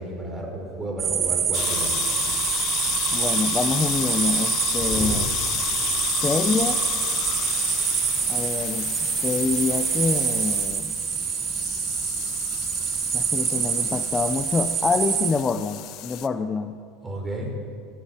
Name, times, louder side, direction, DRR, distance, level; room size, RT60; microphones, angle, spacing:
voice 1, 0.0-1.9 4.8-5.2 17.0-17.5, right 1 dB, 10° right, 0 dB, 4.7 m, -32 dB
sound 1, 1.0-15.3, right 8 dB, 30° right, 2.1 m, -26 dB
sound 2, 1.5-16.3, left 14 dB, 45° left, 0.8 m, -31 dB
voice 2, 3.1-5.3 6.2-6.8 8.3-8.9 9.2-10.9 13.1-16.8, left 4 dB, 15° left, 8 dB, 0.7 m, -26 dB
27.0 x 11.0 x 9.3 m, 2.2 s
supercardioid pair, 155°, 0 cm